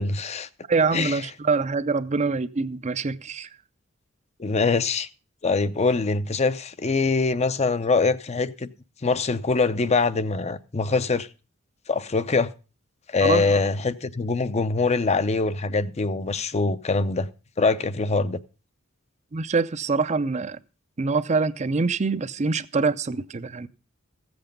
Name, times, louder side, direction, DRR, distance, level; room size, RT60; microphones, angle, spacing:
voice 1, 0.0-0.5 0.9-1.2 4.4-5.1 5.4-8.7 9.0-11.3 11.9-12.5 13.1-17.3 17.6-18.4, left 3 dB, 30° left, 0.6 m, -23 dB
voice 2, 0.7-3.5 13.2-13.6 19.3-20.6 21.0-23.7, right 4 dB, 35° right, 0.5 m, -25 dB
15.0 x 7.9 x 5.2 m
head